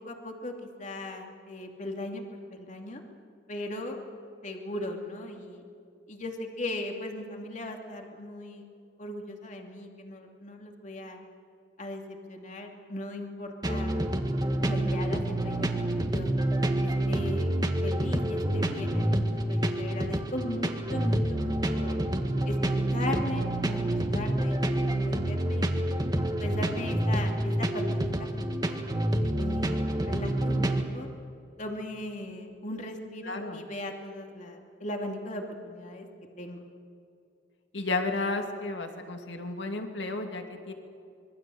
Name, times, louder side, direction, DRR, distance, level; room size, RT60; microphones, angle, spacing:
voice 1, 0.0-2.2 2.5-3.0 3.5-4.0 4.4-5.6 6.1-8.7 9.0-11.2 11.8-14.1 14.7-16.3 16.8-17.6 17.8-22.0 22.4-22.6 22.9-25.9 26.4-28.9 29.4-31.1 31.6-36.1 36.4-36.7, left 1 dB, 40° left, 2 dB, 2.8 m, -38 dB
sound 1, 13.6-30.8, right 1 dB, 20° right, 1.7 m, -28 dB
voice 2, 33.3-33.6 37.7-40.7, left 3 dB, 70° left, 4 dB, 2.5 m, -32 dB
26.0 x 22.5 x 7.9 m, 2.5 s
head